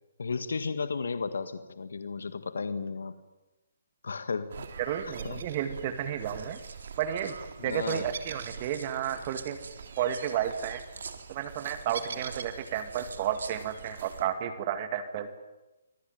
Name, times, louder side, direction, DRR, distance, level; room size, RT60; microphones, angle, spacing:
voice 1, 0.2-3.2 4.0-4.7 5.0-5.4 7.6-8.1, left 4 dB, 80° left, 11 dB, 1.7 m, -34 dB
sound 1, 4.5-14.2, right 6 dB, 60° right, 3.5 m, -44 dB
sound 2, 4.7-5.1 6.0-8.1 8.4-14.2 14.5-14.8, right 5 dB, 80° right, 2.9 m, -48 dB
voice 2, 4.8-6.6 7.0-7.3 7.6-9.6 10.0-10.8 11.3-15.4, right 10 dB, 35° right, 9 dB, 2.2 m, -32 dB
25.5 x 21.5 x 9.3 m, 1.0 s
hypercardioid pair, 150°, 0 cm